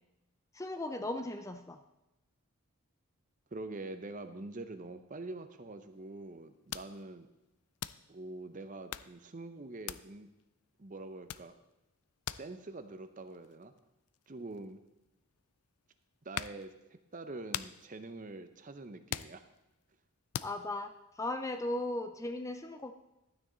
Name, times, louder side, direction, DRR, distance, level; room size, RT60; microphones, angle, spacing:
voice 1, 0.5-1.8 20.4-20.9 21.2-22.9, left 2 dB, 15° left, 7 dB, 0.4 m, -37 dB
voice 2, 3.5-7.3 8.1-10.3 10.8-11.5 12.4-13.7 14.3-14.8 16.2-16.7 17.1-19.4, right 2 dB, 35° right, 9 dB, 0.7 m, -45 dB
sound 1, 5.9-6.1 6.3-6.4 6.7-7.4 7.8-8.3 8.8-9.3 9.8-10.5 10.8-11.0 11.3-15.5 15.9-16.7 17.1-19.8 20.3-20.6, left 11 dB, 85° left, 0.4 m, -43 dB
12.5 x 9.3 x 3.9 m, 0.97 s
head